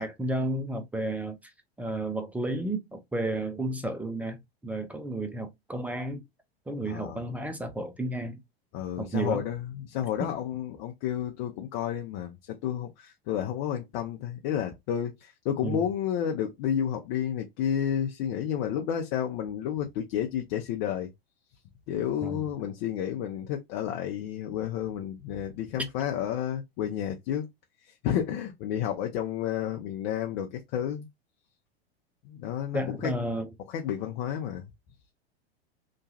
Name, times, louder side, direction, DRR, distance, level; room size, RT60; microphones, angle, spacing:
voice 1, 0.0-1.4 1.8-6.2 6.7-8.4 9.0-9.4 10.2-10.3 15.6-15.9 22.2-22.4 32.7-33.5, right 1 dB, 5° right, 0.3 m, -32 dB
voice 2, 6.9-7.2 8.7-21.1 21.9-27.5 27.9-31.1 32.2-33.1 33.7-34.7, left 9 dB, 50° left, 0.6 m, -31 dB
2.9 x 2.3 x 2.7 m
hypercardioid pair, 100°, 31 cm